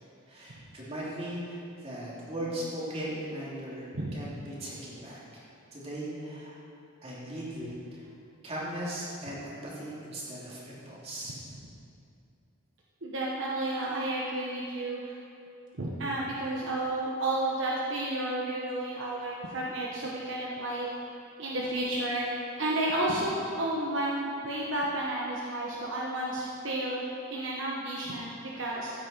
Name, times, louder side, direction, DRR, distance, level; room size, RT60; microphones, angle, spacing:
voice 1, 0.0-5.2 5.7-6.6 7.0-8.0 8.4-11.3, right 1 dB, 30° right, -7 dB, 3.0 m, -38 dB
voice 2, 13.0-15.1 15.8-20.9 21.4-22.2 22.6-27.0 27.3-28.9, right 1 dB, 60° right, -4 dB, 1.3 m, -31 dB
14.5 x 9.0 x 4.5 m, 2.6 s
head